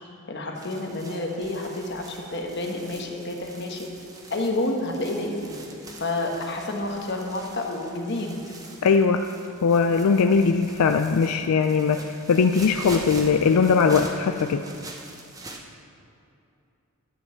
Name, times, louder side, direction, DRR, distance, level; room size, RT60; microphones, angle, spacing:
voice 1, 0.3-3.9 4.3-5.6 6.0-8.4, left 2 dB, 50° left, 1 dB, 1.3 m, -29 dB
sound 1, 0.6-15.6, right 2 dB, 15° right, 0.8 m, -44 dB
voice 2, 8.8-9.3 9.6-14.6, left 5 dB, 80° left, 7 dB, 0.4 m, -20 dB
12.0 x 5.4 x 7.2 m, 2.6 s
head